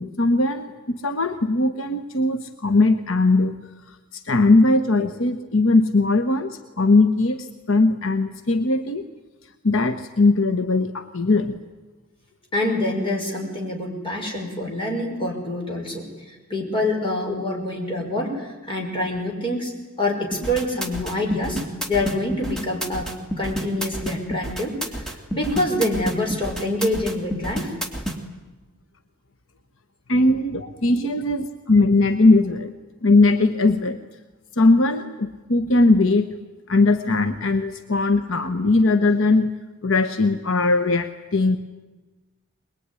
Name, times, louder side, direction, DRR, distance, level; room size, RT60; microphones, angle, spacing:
voice 1, 0.0-3.5 4.2-9.1 9.6-11.6 30.1-32.7 33.0-34.0 34.6-36.3 36.7-39.5 39.8-41.6, left 2 dB, 70° left, 8 dB, 1.2 m, -19 dB
voice 2, 12.5-19.7 20.0-21.6 21.9-24.7 25.3-27.7 30.9-31.0, left 1 dB, 25° left, 0 dB, 5.7 m, -26 dB
sound 1, 20.3-28.2, right 1 dB, ahead, 2.7 m, -29 dB
23.0 x 21.5 x 9.9 m, 1.2 s
head